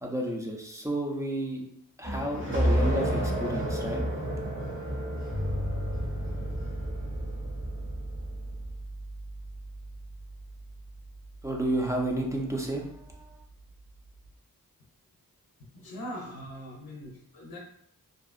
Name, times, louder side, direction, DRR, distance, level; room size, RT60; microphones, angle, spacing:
voice 1, 0.0-1.6 2.0-4.1 11.4-13.4, right 1 dB, 10° right, 0 dB, 0.4 m, -31 dB
sound 1, 2.0-8.4, equal, 35° right, 0.8 m, -31 dB
sound 2, 5.3-14.3, equal, 30° left, 0.8 m, -38 dB
voice 2, 15.8-17.6, equal, 80° left, -2 dB, 0.6 m, -41 dB
2.6 x 2.4 x 2.4 m, 0.72 s
wide cardioid pair, 90°, 36 cm